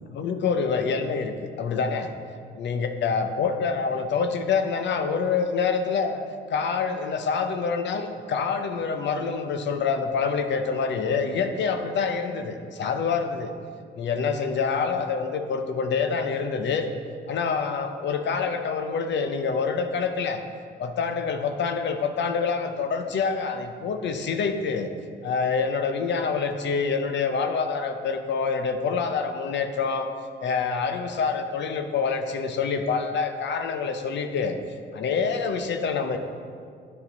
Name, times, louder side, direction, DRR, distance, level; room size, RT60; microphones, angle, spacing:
voice 1, 0.1-2.1 2.6-6.2 6.5-13.5 14.0-16.9 17.3-20.4 20.8-24.9 25.2-30.1 30.4-34.6 34.9-36.2, left 5 dB, 65° left, 7 dB, 0.8 m, -26 dB
9.9 x 5.7 x 3.9 m, 2.2 s
cardioid pair, 90°, 20 cm